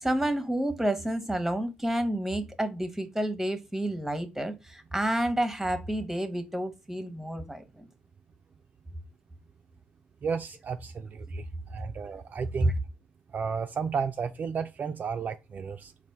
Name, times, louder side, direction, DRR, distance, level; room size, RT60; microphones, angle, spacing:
voice 1, 0.0-7.8 12.7-12.8, right 1 dB, 5° right, 0.8 m, -30 dB
voice 2, 10.2-12.8 13.3-15.9, right 6 dB, 40° right, 0.3 m, -33 dB
4.1 x 2.5 x 3.4 m
hypercardioid pair, 55°, 4 cm